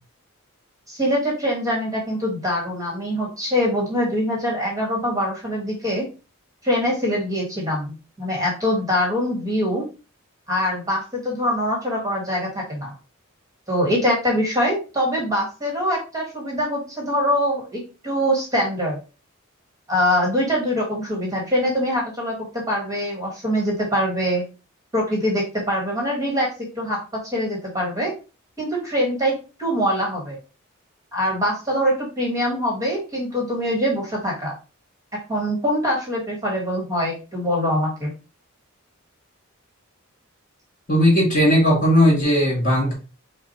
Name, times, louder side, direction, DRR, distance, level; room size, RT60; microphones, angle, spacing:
voice 1, 0.9-6.1 6.6-9.8 10.5-12.9 13.7-19.0 19.9-24.4 24.9-26.5 26.8-27.0 27.2-28.1 28.6-30.4 31.1-34.5 35.3-38.1, equal, 15° right, -2 dB, 1.3 m, -23 dB
voice 2, 40.9-42.9, equal, 40° left, -3 dB, 2.5 m, -17 dB
5.7 x 2.1 x 4.2 m, 0.33 s
head